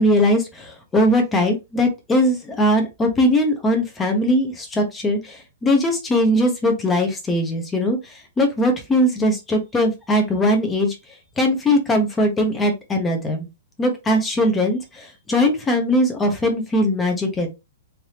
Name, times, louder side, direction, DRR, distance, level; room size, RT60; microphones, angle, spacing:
voice 1, 0.0-11.0 11.4-13.5 13.8-17.5, left 1 dB, 10° left, 4 dB, 0.7 m, -20 dB
3.3 x 2.7 x 2.8 m, 0.23 s
hypercardioid pair, 155°, 0 cm